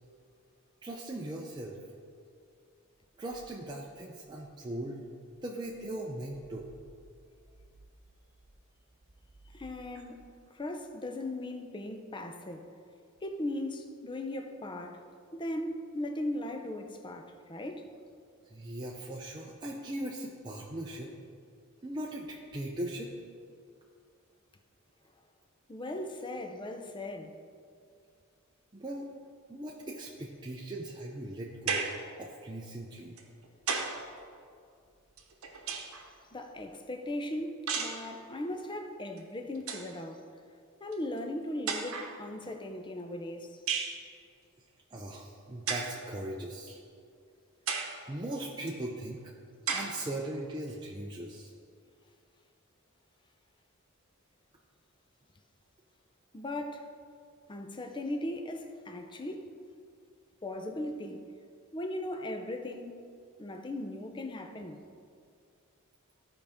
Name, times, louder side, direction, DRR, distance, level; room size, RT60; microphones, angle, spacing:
voice 1, 0.8-1.8 3.2-5.0 5.4-6.7 9.9-10.0 18.5-21.1 21.8-23.1 28.7-29.0 29.5-31.9 32.2-33.2 44.9-46.8 48.1-49.3 49.7-51.5, right 1 dB, 20° right, 0.6 m, -39 dB
voice 2, 9.5-10.3 10.5-12.7 13.2-15.0 15.3-17.9 25.7-27.4 36.3-40.2 40.8-43.6 56.3-56.9 57.5-59.5 60.4-61.3 61.7-63.0 63.4-64.8, left 1 dB, 20° left, 0.6 m, -38 dB
perc hits, 31.7-32.1 33.2-34.1 35.2-36.1 37.7-38.1 39.2-39.3 39.6-39.9 40.9-41.0 41.7-42.2 43.7-44.0 45.7-46.0 46.7-46.8 47.7-48.0 48.7-48.8 49.7-50.0, right 5 dB, 75° right, 1.0 m, -34 dB
15.0 x 5.0 x 3.5 m
head